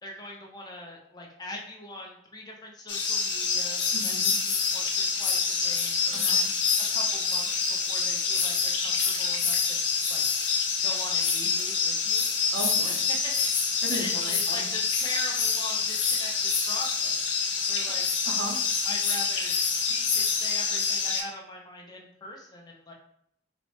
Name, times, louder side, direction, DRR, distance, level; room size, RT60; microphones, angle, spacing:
voice 1, 0.0-6.4 6.9-9.8 10.1-10.2 10.8-12.3 12.8-13.5 13.9-17.2 17.7-18.0 18.8-22.9, left 1 dB, 20° left, -1 dB, 0.5 m, -42 dB
sound 1, 2.9-21.2, left 5 dB, 90° left, 0.5 m, -26 dB
voice 2, 3.9-4.3 6.1-6.5 12.5-13.0 13.8-14.7 18.3-18.6, right 2 dB, 75° right, 3 dB, 0.5 m, -36 dB
3.0 x 2.0 x 3.0 m, 0.72 s
head